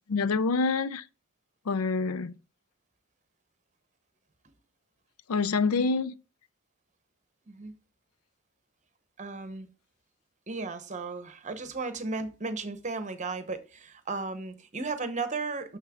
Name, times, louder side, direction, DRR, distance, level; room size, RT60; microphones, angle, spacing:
voice 1, 0.1-1.0 1.7-2.3 5.3-6.1, left 4 dB, 90° left, 0.5 m, -26 dB
voice 2, 9.2-9.7 10.5-15.8, right 3 dB, 35° right, 0.9 m, -35 dB
6.6 x 6.5 x 3.6 m
head